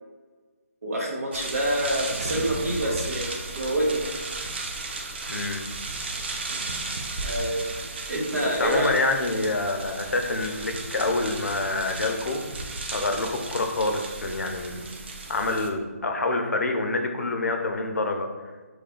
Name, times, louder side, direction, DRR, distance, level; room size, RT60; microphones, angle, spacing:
voice 1, 0.8-4.1 7.2-7.7 8.1-8.9, right 1 dB, 70° right, -2 dB, 1.1 m, -27 dB
sound 1, 1.3-15.7, right 3 dB, 45° right, 0.4 m, -35 dB
voice 2, 5.3-5.6 8.6-12.4 12.9-14.9 15.3-18.3, left 2 dB, 80° left, 4 dB, 0.6 m, -27 dB
3.1 x 2.4 x 3.7 m, 1.4 s
hypercardioid pair, 165°, 8 cm